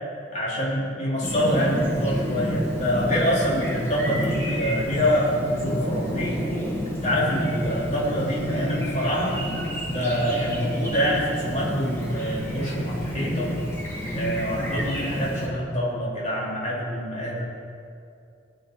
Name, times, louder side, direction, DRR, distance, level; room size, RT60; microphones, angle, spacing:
voice 1, 0.3-6.5 7.0-9.4 9.9-13.6 14.1-17.4, equal, 40° left, -6 dB, 3.4 m, -25 dB
Chirp tweet, 1.2-15.5, equal, 15° left, 2.1 m, -29 dB
18.5 x 10.0 x 4.0 m, 2.4 s
head